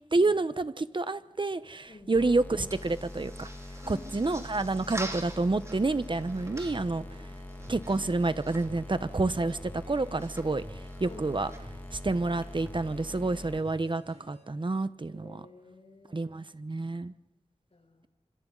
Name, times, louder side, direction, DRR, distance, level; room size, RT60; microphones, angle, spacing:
voice 1, 0.1-3.5 3.9-7.0 7.7-11.5 11.9-15.4 16.1-17.1, right 3 dB, 45° right, 13 dB, 1.1 m, -29 dB
sound 1, 1.8-12.7, right 1 dB, 25° right, 4.2 m, -47 dB
voice 2, 1.9-2.3 3.8-4.4 11.0-11.4 15.1-16.4 16.6-16.8 17.7-18.1, left 2 dB, 60° left, 1 dB, 7.0 m, -51 dB
sound 2, 2.1-13.6, left 1 dB, 15° left, 1.6 m, -44 dB
sound 3, 6.6-14.4, right 1 dB, 70° right, 5.4 m, -51 dB
26.0 x 26.0 x 4.1 m, 0.95 s
wide cardioid pair, 65°, 12 cm